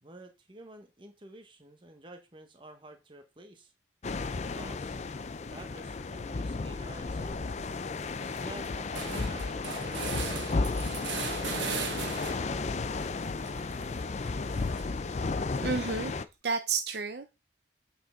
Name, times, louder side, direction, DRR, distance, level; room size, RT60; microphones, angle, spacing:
voice 1, 0.0-3.7 4.5-5.0 5.5-7.5 8.0-10.1, right 1 dB, 25° right, 1.3 m, -50 dB
sound 1, 4.0-16.3, left 3 dB, 40° left, 0.4 m, -33 dB
sound 2, 7.0-7.5 7.9-8.0 8.2-12.6 13.0-15.1, right 5 dB, 80° right, 1.5 m, -39 dB
voice 2, 15.6-17.3, right 4 dB, 60° right, 0.7 m, -32 dB
8.8 x 5.5 x 3.7 m
head